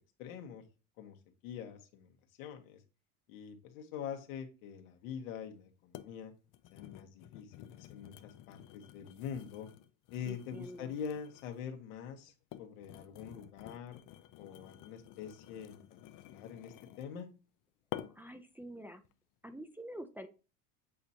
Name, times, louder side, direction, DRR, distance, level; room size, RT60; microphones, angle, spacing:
voice 1, 0.2-0.6 1.0-1.2 1.4-2.1 2.4-2.8 3.3-6.3 6.7-9.7 10.1-12.3 12.6-14.0 14.4-15.8 16.2-17.3, left 8 dB, 80° left, 4 dB, 1.7 m, -44 dB
sound 1, 5.2-5.3 5.9-6.2 6.5-11.7 12.3-17.2 17.9-18.4 18.9-19.1, left 13 dB, 50° left, 0.7 m, -50 dB
voice 2, 10.2-10.9 18.1-19.0 19.4-20.3, right 1 dB, 5° right, 5 dB, 0.6 m, -47 dB
8.3 x 4.1 x 2.9 m, 0.32 s
supercardioid pair, 105°, 41 cm